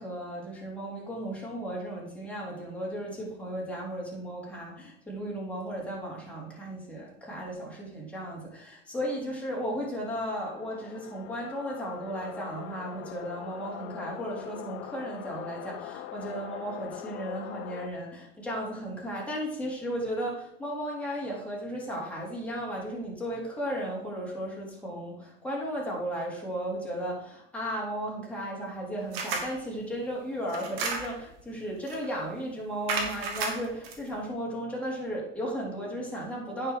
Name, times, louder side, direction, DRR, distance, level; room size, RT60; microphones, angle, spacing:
voice 1, 0.0-36.7, equal, 5° left, -4 dB, 3.8 m, -35 dB
sound 1, 9.8-17.9, left 12 dB, 50° left, 0.8 m, -43 dB
sound 2, 29.1-29.6 30.5-31.3 31.9-32.1 32.9-34.0, right 4 dB, 70° right, 2.0 m, -32 dB
9.1 x 5.7 x 4.9 m, 0.73 s
hypercardioid pair, 95°, 30 cm